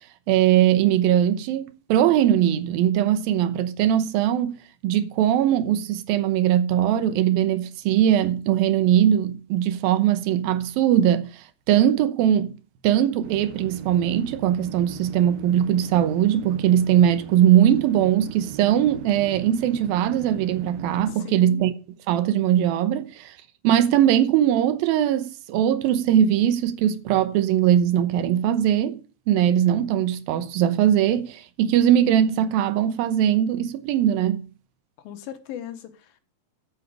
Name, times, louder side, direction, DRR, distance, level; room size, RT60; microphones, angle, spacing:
voice 1, 0.3-4.5 4.8-12.5 12.8-21.7 22.1-23.4 23.6-29.0 29.3-34.4, right 10 dB, 90° right, 2.8 m, -20 dB
sound 1, 13.2-21.1, right 11 dB, 75° right, 1.6 m, -40 dB
voice 2, 21.1-21.7 35.0-36.2, left 10 dB, 85° left, 3.1 m, -38 dB
12.0 x 8.1 x 5.0 m
omnidirectional pair, 4.1 m